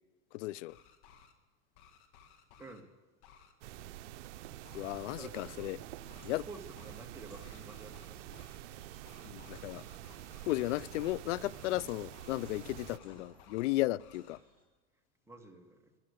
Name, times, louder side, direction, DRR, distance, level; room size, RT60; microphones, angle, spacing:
voice 1, 0.3-0.8 4.7-5.8 6.2-6.4 9.2-9.8 10.5-14.4, left 18 dB, 85° left, 0.5 m, -35 dB
sound 1, 0.6-1.3 1.7-2.8 3.2-3.5 4.6-5.0 6.1-6.4 6.7-7.1 7.3-8.6 9.0-11.2 11.5-11.8 12.1-13.7 14.0-14.4, left 7 dB, 65° left, 2.0 m, -60 dB
voice 2, 2.6-2.9 5.2-5.7 6.5-8.4 15.3-15.9, right 3 dB, 10° right, 1.7 m, -50 dB
sound 2, 3.6-13.0, right 14 dB, 85° right, 0.6 m, -48 dB
Walk footsteps, 5.8-14.6, left 1 dB, 15° left, 4.0 m, -62 dB
13.5 x 11.0 x 6.7 m
supercardioid pair, 110°, 35 cm